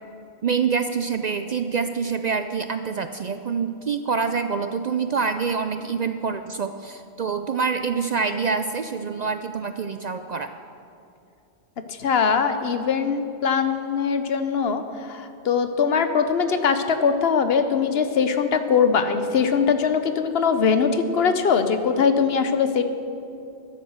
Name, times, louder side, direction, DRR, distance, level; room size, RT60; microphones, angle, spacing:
voice 1, 0.4-10.5, right 5 dB, 55° right, 8 dB, 0.5 m, -26 dB
voice 2, 11.9-22.8, left 6 dB, 70° left, 9 dB, 1.0 m, -21 dB
13.0 x 10.0 x 6.4 m, 2.6 s
omnidirectional pair, 1.1 m